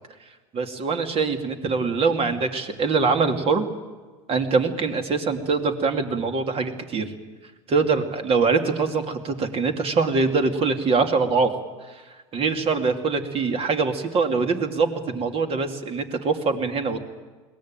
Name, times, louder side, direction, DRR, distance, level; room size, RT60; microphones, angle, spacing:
voice 1, 0.5-3.6 4.3-7.1 7.7-11.5 11.8-17.0, right 4 dB, 35° right, 7 dB, 2.6 m, -23 dB
22.0 x 18.0 x 9.0 m, 1.3 s
hypercardioid pair, 95°, 16 cm